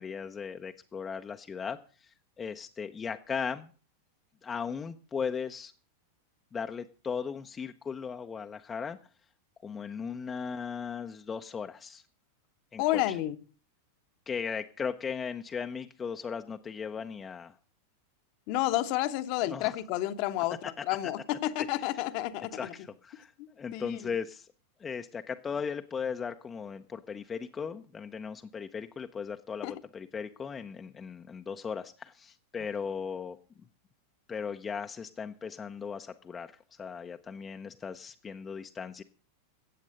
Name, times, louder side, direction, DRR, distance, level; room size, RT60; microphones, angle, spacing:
voice 1, 0.0-3.7 4.4-5.7 6.5-9.0 9.6-12.0 12.7-13.2 14.3-17.6 19.5-19.8 20.6-20.8 22.5-23.3 23.6-24.5 24.8-33.4 34.3-36.5 36.8-39.0, left 6 dB, 20° left, 0.7 m, -37 dB
voice 2, 12.8-13.4 18.5-22.7 23.7-24.1 29.6-29.8, left 15 dB, 45° left, 1.0 m, -30 dB
14.5 x 8.4 x 6.4 m
figure-of-eight pair, 90°, 0 cm